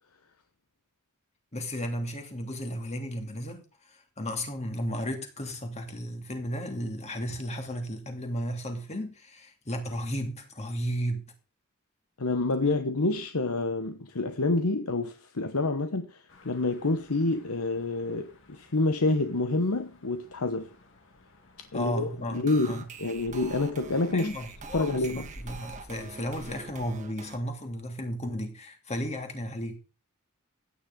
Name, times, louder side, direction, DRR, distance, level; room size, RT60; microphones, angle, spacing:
voice 1, 1.5-11.3 21.7-22.8 24.1-29.8, equal, 30° left, 2.5 m, -34 dB
voice 2, 12.2-20.7 21.7-24.3 24.7-25.3, left 2 dB, 85° left, 1.1 m, -28 dB
sound 1, 16.3-27.0, equal, 60° left, 2.7 m, -52 dB
sound 2, 22.3-27.4, right 5 dB, 35° right, 1.7 m, -45 dB
15.5 x 9.7 x 3.8 m
head